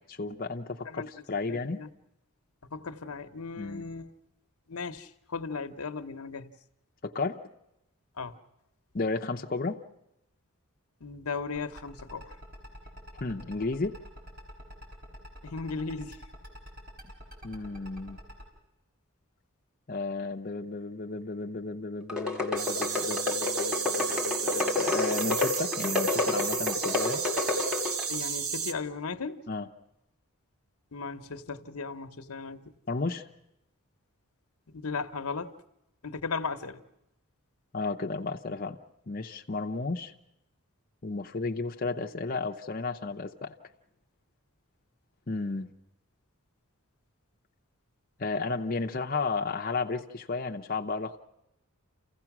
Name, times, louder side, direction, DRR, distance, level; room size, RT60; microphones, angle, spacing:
voice 1, 0.1-1.8 3.6-3.9 7.0-7.4 8.9-9.8 13.2-14.0 17.4-18.2 19.9-27.2 29.5-29.7 32.9-33.2 37.7-38.8 39.1-40.1 41.0-43.5 45.3-45.7 48.2-51.2, left 3 dB, 40° left, 0.7 m, -33 dB
voice 2, 0.8-1.2 1.5-1.9 2.7-4.1 4.7-6.5 8.2-8.3 11.0-12.3 15.4-16.2 28.1-29.5 30.9-32.7 34.7-35.5 36.0-36.8, left 4 dB, 90° left, 0.9 m, -36 dB
sound 1, 11.6-18.4, equal, 40° right, 4.4 m, -45 dB
sound 2, 22.1-28.2, left 3 dB, 5° right, 1.9 m, -29 dB
sound 3, 22.6-28.7, right 7 dB, 80° right, 1.1 m, -33 dB
28.5 x 16.0 x 6.0 m
head